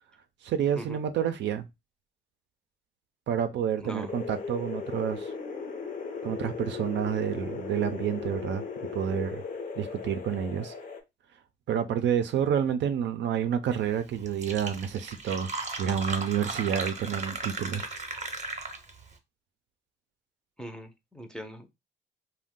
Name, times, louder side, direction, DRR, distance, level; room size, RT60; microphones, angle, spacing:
voice 1, 0.4-1.7 3.3-5.3 6.2-8.6 8.9-9.4 9.8-10.7 11.7-15.5 15.8-17.8, right 8 dB, 65° right, 0.5 m, -29 dB
voice 2, 3.8-4.1 20.6-21.7, equal, 5° left, 0.6 m, -40 dB
sound 1, 4.1-11.0, left 5 dB, 45° left, 0.7 m, -37 dB
Fill (with liquid), 13.9-14.0 14.3-19.0, right 3 dB, 35° right, 0.8 m, -36 dB
2.5 x 2.2 x 3.6 m
cardioid pair, 90°, 20 cm